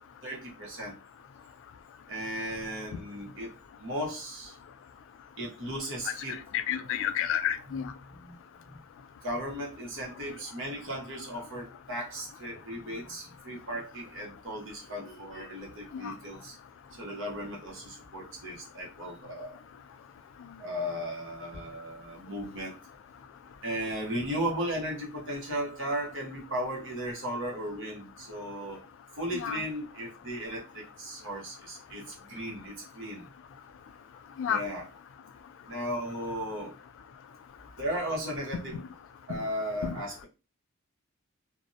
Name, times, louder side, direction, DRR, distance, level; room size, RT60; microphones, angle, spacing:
voice 1, 0.2-0.9 2.1-3.5 3.8-4.5 5.4-6.4 8.1-8.4 8.7-8.8 9.2-16.6 16.9-19.5 20.6-22.8 23.6-28.8 29.2-33.3 34.4-34.8 35.7-36.7 37.8-38.8 39.3-40.3, equal, 65° right, -2 dB, 0.9 m, -36 dB
voice 2, 6.7-7.9 16.0-16.1 29.3-29.6 34.4-34.6 39.8-40.0, left 9 dB, 65° left, 10 dB, 0.3 m, -30 dB
2.4 x 2.0 x 2.6 m, 0.29 s
head